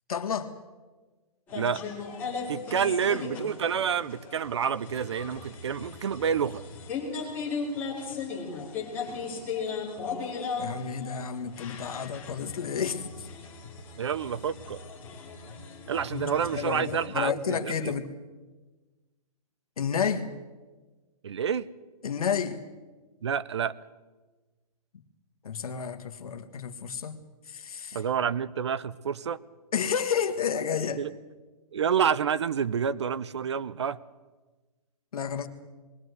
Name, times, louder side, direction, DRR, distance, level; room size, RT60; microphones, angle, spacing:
voice 1, 0.1-0.5 10.6-13.3 16.0-18.1 19.8-20.3 22.0-22.6 25.4-27.2 27.5-28.0 29.7-31.0 35.1-35.5, left 7 dB, 65° left, 7 dB, 1.7 m, -31 dB
sound 1, 1.5-17.1, left 4 dB, 10° left, 2.4 m, -37 dB
voice 2, 1.5-1.8 2.5-6.6 14.0-14.8 15.9-17.9 21.2-21.7 23.2-23.7 27.9-29.4 31.0-31.1 31.7-34.0, right 7 dB, 45° right, 18 dB, 0.6 m, -28 dB
21.0 x 15.5 x 8.1 m, 1.3 s
hypercardioid pair, 175°, 20 cm